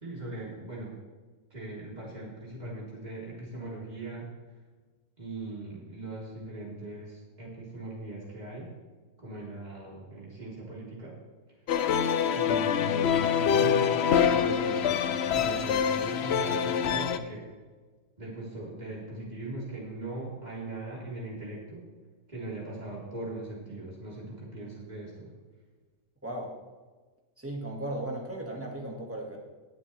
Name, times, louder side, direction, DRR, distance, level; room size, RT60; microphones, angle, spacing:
voice 1, 0.0-0.9 1.5-4.3 5.2-8.7 9.2-11.1 12.3-17.4 18.2-21.9 22.3-25.3, right 2 dB, 30° right, -6 dB, 3.8 m, -40 dB
sound 1, 11.7-17.2, left 8 dB, 60° left, 0.7 m, -25 dB
voice 2, 26.2-26.6 27.4-29.4, right 1 dB, 10° right, -1 dB, 1.9 m, -36 dB
19.5 x 7.4 x 3.4 m, 1.4 s
omnidirectional pair, 1.5 m